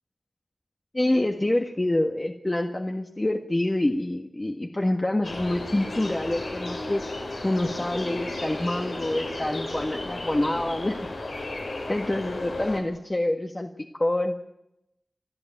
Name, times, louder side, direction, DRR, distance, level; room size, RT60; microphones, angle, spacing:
voice 1, 0.9-7.0 7.4-11.1 11.9-14.4, left 1 dB, 30° left, 3 dB, 1.6 m, -26 dB
sound 1, 5.2-12.8, left 2 dB, 85° left, 7.2 m, -34 dB
29.5 x 12.0 x 9.0 m, 0.86 s
wide cardioid pair, 55°, 0 cm